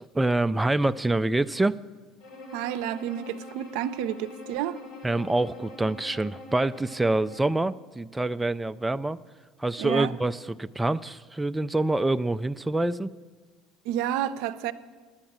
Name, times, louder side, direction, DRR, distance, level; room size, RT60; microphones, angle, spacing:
voice 1, 0.0-1.8 5.0-9.2 9.6-13.1, right 2 dB, 10° right, 0.3 m, -26 dB
Bowed string instrument, 2.2-7.6, left 2 dB, 90° left, 4.8 m, -45 dB
voice 2, 2.5-4.8 9.8-10.1 13.8-14.7, right 11 dB, 75° right, 0.5 m, -30 dB
10.5 x 8.9 x 8.7 m
supercardioid pair, 90°, 0 cm